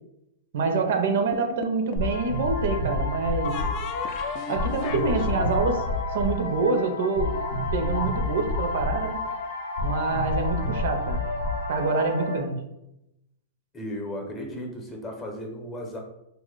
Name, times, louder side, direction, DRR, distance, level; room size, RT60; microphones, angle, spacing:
voice 1, 0.5-3.6 4.5-5.8 6.1-7.3 7.7-9.2 9.8-11.2 11.7-12.6, right 4 dB, 70° right, 5 dB, 0.5 m, -26 dB
sound 1, 1.3-2.2 3.4-7.1, left 6 dB, 45° left, 0.3 m, -35 dB
sound 2, 2.0-12.4, left 2 dB, 80° left, 0.7 m, -29 dB
voice 2, 13.7-16.0, equal, 20° left, 2 dB, 0.7 m, -35 dB
2.8 x 2.1 x 3.7 m, 0.86 s
hypercardioid pair, 125°, 0 cm